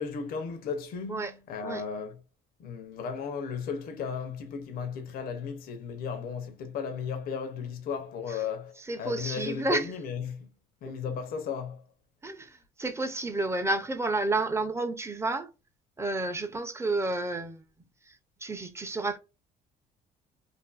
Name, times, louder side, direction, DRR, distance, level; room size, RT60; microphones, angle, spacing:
voice 1, 0.0-2.2 2.6-10.5 10.8-11.8, left 6 dB, 60° left, 0.5 m, -35 dB
voice 2, 8.8-9.9 10.9-11.0 12.2-15.5 16.0-17.6 18.1-19.2, right 2 dB, 15° right, 0.5 m, -31 dB
2.6 x 2.5 x 2.2 m
cardioid pair, 110°, 17 cm